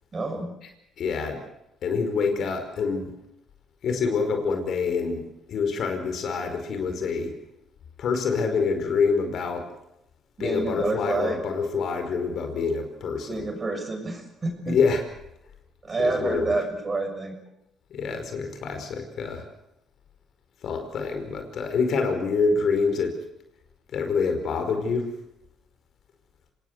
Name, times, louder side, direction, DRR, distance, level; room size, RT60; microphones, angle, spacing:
voice 1, 0.1-0.5 10.4-11.4 13.3-14.7 15.8-17.4, right 2 dB, 30° right, 5 dB, 6.5 m, -28 dB
voice 2, 1.0-1.4 1.8-3.1 3.8-5.2 5.5-7.3 8.0-9.7 10.4-13.5 14.7-15.0 16.0-16.5 17.9-19.5 20.6-23.2 23.9-25.1, left 5 dB, 65° left, 6 dB, 5.0 m, -26 dB
26.5 x 18.5 x 8.1 m, 0.86 s
cardioid pair, 95°, 0 cm